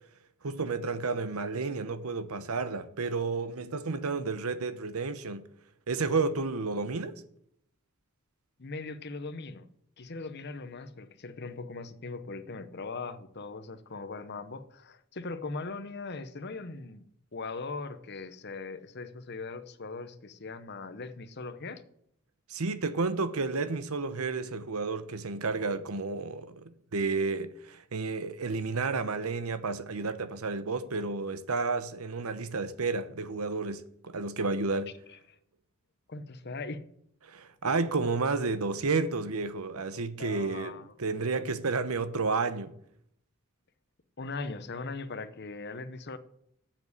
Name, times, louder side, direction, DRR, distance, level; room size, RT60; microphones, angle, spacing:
voice 1, 0.4-5.5 5.9-7.1 22.5-26.6 26.9-34.9 37.2-42.7, right 4 dB, 85° right, 0.9 m, -31 dB
voice 2, 8.6-9.7 10.0-21.8 35.1-35.2 36.1-36.9 40.2-40.9 44.2-46.2, left 3 dB, 50° left, 0.9 m, -40 dB
7.6 x 7.2 x 8.1 m
head